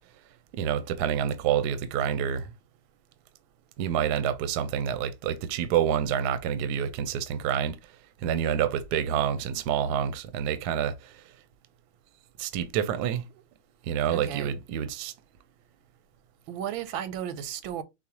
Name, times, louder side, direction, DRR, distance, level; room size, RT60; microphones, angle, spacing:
voice 1, 0.5-2.5 3.8-7.8 8.2-11.2 12.4-13.2 13.8-15.1, right 9 dB, 70° right, 1.1 m, -28 dB
voice 2, 14.1-14.5 16.5-17.8, right 9 dB, 85° right, 1.4 m, -34 dB
6.9 x 2.3 x 2.9 m
omnidirectional pair, 2.1 m